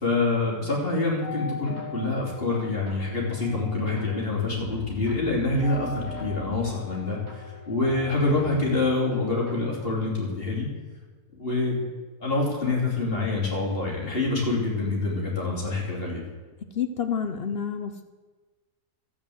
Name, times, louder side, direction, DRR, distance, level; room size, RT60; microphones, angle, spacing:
voice 1, 0.0-7.2 7.7-10.7 11.3-11.8 12.2-16.2, left 3 dB, 35° left, -3 dB, 3.3 m, -26 dB
sound 1, 1.2-10.0, left 1 dB, 60° right, 3.8 m, -40 dB
voice 2, 16.7-18.0, left 7 dB, 55° left, 9 dB, 0.7 m, -29 dB
12.0 x 8.6 x 7.8 m, 1.3 s
omnidirectional pair, 1.7 m